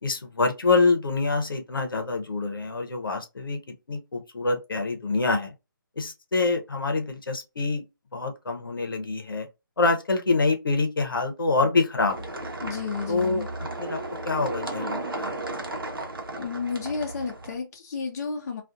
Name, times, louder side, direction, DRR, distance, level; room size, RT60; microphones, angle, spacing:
voice 1, 0.0-3.6 3.9-5.5 6.0-7.8 8.1-9.5 9.8-12.4 13.1-13.5 13.8-14.0 14.2-15.3, left 3 dB, 75° left, 0.8 m, -26 dB
sound 1, 12.1-17.5, right 2 dB, 80° right, 0.8 m, -34 dB
voice 2, 12.6-13.5 16.4-18.6, left 5 dB, 45° left, 0.6 m, -32 dB
2.4 x 2.4 x 2.6 m
figure-of-eight pair, 145°, 12 cm